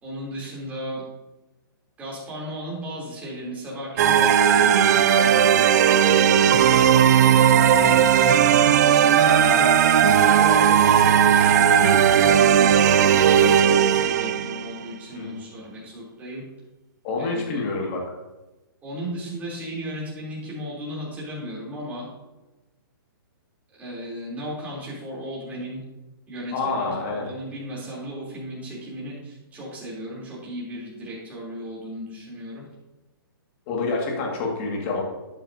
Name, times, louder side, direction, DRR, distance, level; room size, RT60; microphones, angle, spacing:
voice 1, 0.0-1.0 2.0-6.7 7.2-9.8 10.4-11.7 12.1-16.4 17.2-17.7 18.8-22.1 23.8-25.8 26.3-32.6, equal, 10° right, -7 dB, 3.4 m, -35 dB
sound 1, 4.0-14.7, right 8 dB, 45° right, 0.6 m, -17 dB
voice 2, 17.0-18.0 26.5-27.3 33.7-35.0, left 3 dB, 30° left, -1 dB, 2.1 m, -28 dB
11.5 x 8.8 x 2.8 m, 1.1 s
hypercardioid pair, 155°, 13 cm